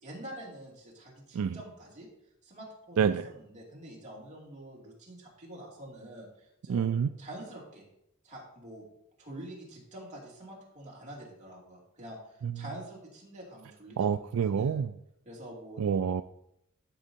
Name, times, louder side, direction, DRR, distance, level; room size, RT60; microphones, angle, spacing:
voice 1, 0.0-2.1 2.4-7.8 8.2-8.9 9.2-14.8 15.2-15.8, right 1 dB, 35° right, -4 dB, 2.8 m, -46 dB
voice 2, 3.0-3.3 6.7-7.1 12.4-12.6 14.0-14.9 15.8-16.2, right 7 dB, 70° right, 11 dB, 0.3 m, -27 dB
13.0 x 6.2 x 2.8 m, 0.79 s
head